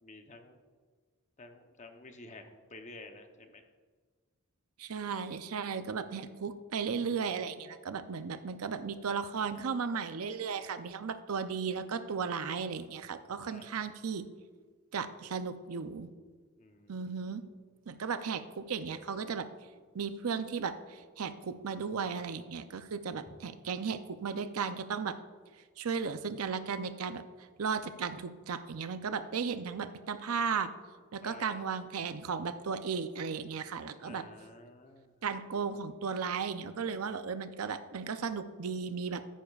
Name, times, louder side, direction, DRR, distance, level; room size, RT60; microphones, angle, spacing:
voice 1, 0.0-0.6 1.4-3.6 13.5-13.7 16.6-17.6 31.2-31.6 34.0-35.1, left 2 dB, 30° left, 5 dB, 0.8 m, -51 dB
voice 2, 4.8-14.3 14.9-16.1 16.9-17.4 17.9-19.5 19.9-25.2 25.8-27.2 27.6-30.7 31.1-34.3 35.2-39.2, right 6 dB, 80° right, 11 dB, 0.5 m, -35 dB
14.0 x 10.0 x 2.4 m, 1.5 s
head